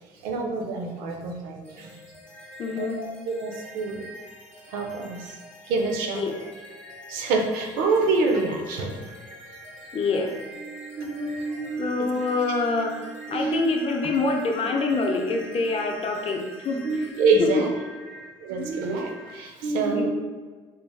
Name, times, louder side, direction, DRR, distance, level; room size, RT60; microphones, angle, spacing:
voice 1, 0.2-2.0 2.8-2.9 3.3-4.0 4.7-5.4 5.6-6.2 7.1-9.1 11.0-12.1 13.3-13.6 16.8-17.7 18.4-20.1, right 3 dB, 75° right, 2 dB, 0.6 m, -26 dB
sound 1, 1.6-19.3, equal, 10° left, 1.1 m, -45 dB
voice 2, 2.6-3.0 6.1-6.4 9.9-10.3 11.8-12.9 13.3-17.1 17.4-17.6 19.9-20.1, left 3 dB, 40° left, 3 dB, 0.6 m, -26 dB
sound 2, 10.5-16.0, right 7 dB, 85° left, 0.5 m, -42 dB
3.4 x 3.2 x 2.3 m, 1.4 s
supercardioid pair, 75°, 15 cm